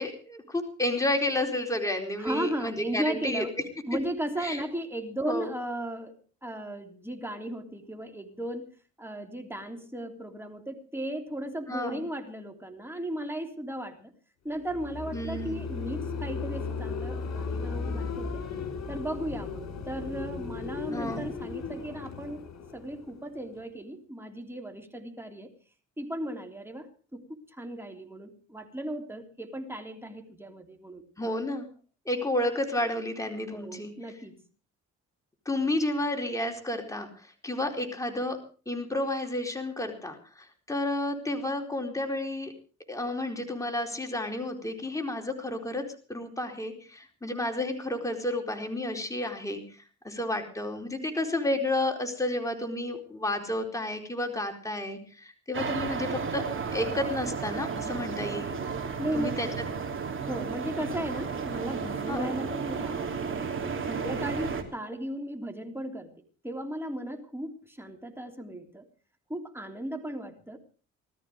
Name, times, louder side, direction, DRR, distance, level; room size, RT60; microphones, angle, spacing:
voice 1, 0.0-3.4 4.4-4.6 5.2-5.5 11.7-12.0 15.1-15.6 20.9-21.3 31.2-31.7 32.1-33.9 35.5-38.4 38.7-42.5 42.9-49.6 50.0-56.4 56.7-58.6 59.1-59.5 62.1-62.3, left 1 dB, 10° left, 3 dB, 4.3 m, -31 dB
voice 2, 2.2-3.6 3.9-8.7 9.0-14.1 14.4-18.4 18.9-22.5 22.7-25.5 26.0-27.2 27.5-31.0 33.5-34.4 59.0-59.4 60.1-63.3 63.9-66.1 66.4-68.9 69.3-70.6, right 1 dB, 10° right, 4 dB, 3.4 m, -36 dB
sound 1, 14.6-23.6, left 5 dB, 60° left, 4.7 m, -36 dB
sound 2, 55.5-64.6, right 5 dB, 40° right, 3.3 m, -33 dB
19.0 x 13.5 x 5.0 m, 0.39 s
cardioid pair, 90°, 30 cm